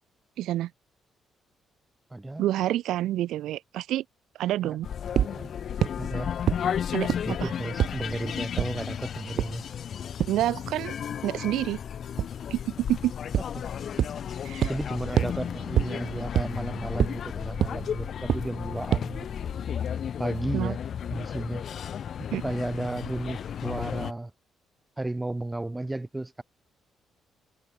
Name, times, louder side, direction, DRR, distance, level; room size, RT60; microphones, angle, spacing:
voice 1, 0.4-0.7 2.4-4.0 4.4-4.9 6.9-7.1 7.4-7.5 10.3-11.0 11.2-11.8 12.5-12.6 12.9-13.1 14.4-14.7 20.5-20.7 22.3-22.4, right 14 dB, 85° right, 1.1 m, -27 dB
voice 2, 2.1-2.5 4.6-4.8 5.2-5.5 6.0-6.3 7.2-9.6 14.7-19.6 20.2-20.8 21.1-21.6 22.4-24.3 25.0-26.4, right 2 dB, 10° right, 2.7 m, -33 dB
sound 1, 4.8-24.1, left 8 dB, 45° left, 3.0 m, -34 dB
sound 2, 5.2-5.3 5.8-5.9 6.5-6.6 7.1-7.2 7.8-7.9 8.6-8.7 9.4-9.5 10.2-10.3 12.2-12.3 13.3-13.4 14.0-14.1 14.6-14.7 15.2-15.3 15.8-15.9 16.4-16.5 17.0-17.1 17.6-17.7 18.3-18.4 18.9-19.0, right 10 dB, 55° right, 0.8 m, -22 dB
cardioid pair, 165°, 0 cm